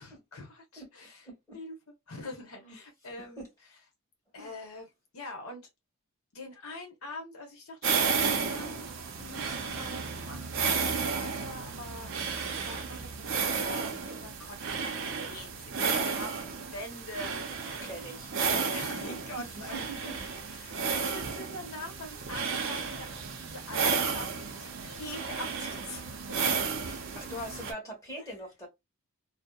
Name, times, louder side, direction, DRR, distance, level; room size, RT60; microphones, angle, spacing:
voice 1, 0.0-1.3 1.5-3.5 4.3-4.9 5.1-5.7 6.3-12.1 12.4-18.0 18.5-26.4 28.2-28.3, left 2 dB, 80° left, 0.9 m, -44 dB
voice 2, 1.2-1.6 2.6-2.8 3.2-3.5 4.4-4.5 17.8-20.1 26.8-28.7, right 1 dB, 15° left, 1.3 m, -43 dB
sound 1, 7.8-27.7, right 5 dB, 60° right, 0.5 m, -33 dB
2.7 x 2.0 x 2.2 m
head